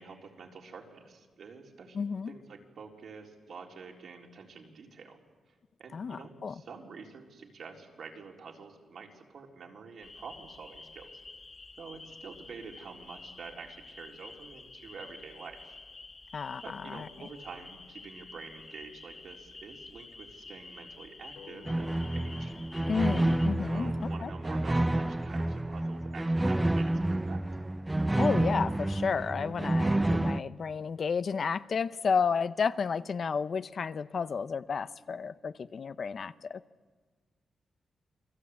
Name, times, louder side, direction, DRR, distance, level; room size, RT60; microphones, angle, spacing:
voice 1, 0.0-2.0 2.3-5.2 5.8-11.1 11.8-15.7 16.6-22.5 23.7-27.4, right 5 dB, 70° right, 4.1 m, -47 dB
voice 2, 1.9-2.3 5.9-6.5 16.3-17.3 22.9-24.3 28.2-36.6, left 5 dB, 55° left, 0.8 m, -32 dB
Spring Peepers, 10.0-23.5, left 3 dB, 35° left, 1.9 m, -50 dB
sound 1, 21.4-24.6, left 6 dB, 85° left, 4.2 m, -55 dB
sound 2, 21.6-30.4, right 1 dB, 15° right, 0.7 m, -29 dB
28.5 x 21.5 x 8.5 m
cardioid pair, 95°, 0 cm